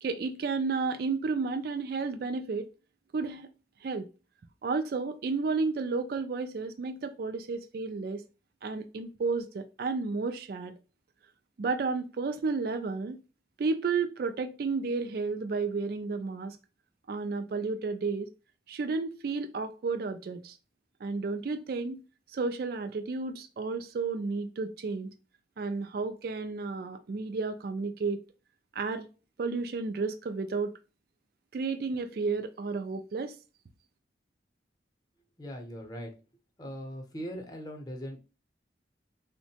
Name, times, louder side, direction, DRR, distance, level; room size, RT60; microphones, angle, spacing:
voice 1, 0.0-2.7 3.1-3.5 3.8-4.1 4.6-8.2 8.6-10.8 11.6-13.2 13.6-16.6 17.1-18.3 18.7-20.6 21.0-22.0 22.3-25.1 25.6-28.2 28.7-29.1 29.4-30.7 31.5-33.4, right 4 dB, 55° right, 0.3 m, -32 dB
voice 2, 35.4-36.1 36.6-38.2, equal, 20° left, 0.7 m, -40 dB
3.7 x 2.1 x 2.7 m
head